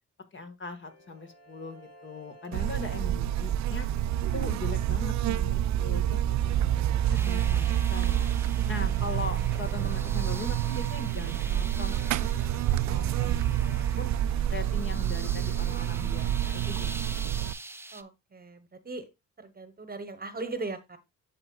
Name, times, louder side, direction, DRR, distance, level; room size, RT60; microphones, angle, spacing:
voice 1, 0.3-3.9 4.3-12.5 12.8-14.1 14.5-17.2, left 3 dB, 40° left, 1.5 m, -40 dB
sound 1, 0.8-16.3, equal, 65° left, 3.6 m, -54 dB
Buzz, 2.5-17.5, right 11 dB, 65° right, 0.5 m, -28 dB
sound 2, 7.1-18.0, right 2 dB, 10° right, 0.5 m, -45 dB
voice 2, 17.9-19.1 19.4-21.0, right 3 dB, 30° right, 1.1 m, -39 dB
12.5 x 4.4 x 2.3 m
cardioid pair, 90°, 30 cm